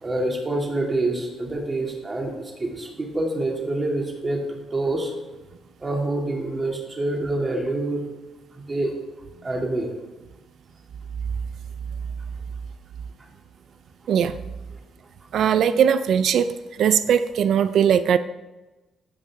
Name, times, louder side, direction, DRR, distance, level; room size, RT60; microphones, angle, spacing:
voice 1, 0.0-5.1 5.8-8.0 8.6-9.0 9.4-9.9, right 2 dB, 30° right, 0 dB, 2.5 m, -26 dB
voice 2, 15.3-16.5 16.8-18.2, right 8 dB, 70° right, 12 dB, 0.4 m, -19 dB
15.0 x 5.5 x 3.6 m, 1.1 s
cardioid pair, 90°, 0 cm